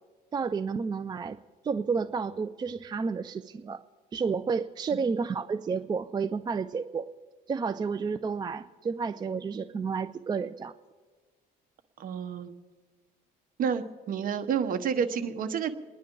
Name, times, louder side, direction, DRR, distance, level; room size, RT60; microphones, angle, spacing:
voice 1, 0.3-3.8 4.1-7.1 7.5-10.7, right 5 dB, 25° right, 10 dB, 0.4 m, -31 dB
voice 2, 12.0-12.5 13.6-15.7, right 7 dB, 55° right, 8 dB, 1.2 m, -29 dB
28.5 x 10.5 x 3.9 m, 1.5 s
cardioid pair, 110°, 17 cm